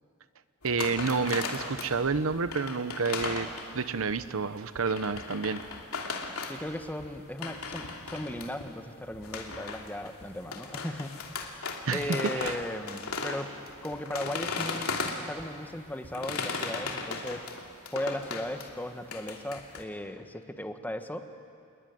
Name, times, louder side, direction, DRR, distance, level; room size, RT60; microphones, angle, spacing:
sound 1, 0.6-4.3 4.7-8.7 9.1-15.5 16.0-18.7 19.1-19.8, left 4 dB, 75° left, 2.8 m, -37 dB
voice 1, 0.6-3.5 3.7-5.6 11.8-12.6, right 4 dB, 70° right, 13 dB, 0.9 m, -29 dB
voice 2, 6.5-11.1 11.9-13.5 13.8-14.9 15.2-17.4 17.9-21.3, left 1 dB, 10° left, 7 dB, 1.3 m, -37 dB
28.5 x 21.0 x 9.5 m, 2.3 s
head